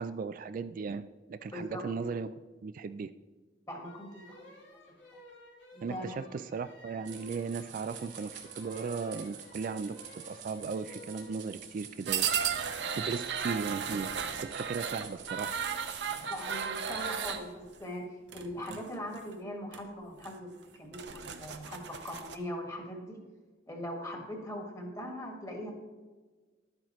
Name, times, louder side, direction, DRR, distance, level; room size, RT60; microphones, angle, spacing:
voice 1, 0.0-2.3 2.6-3.1 5.8-12.3 12.9-14.1 14.4-15.5 18.7-18.8, right 5 dB, 50° right, 12 dB, 0.3 m, -37 dB
voice 2, 1.5-1.9 3.7-4.7 5.7-6.1 16.3-18.0 18.3-20.5 20.8-23.2 23.7-25.7, equal, 20° left, 2 dB, 1.7 m, -40 dB
sound 1, 3.8-11.4, left 1 dB, 80° left, 2.8 m, -55 dB
sound 2, 7.0-17.3, right 7 dB, 85° right, 1.7 m, -48 dB
sound 3, 12.1-17.4 18.3-18.8 19.2-19.3 19.7-19.8 20.2-20.3 20.7-22.4, right 7 dB, 70° right, 0.8 m, -35 dB
11.5 x 8.8 x 3.1 m, 1.3 s
head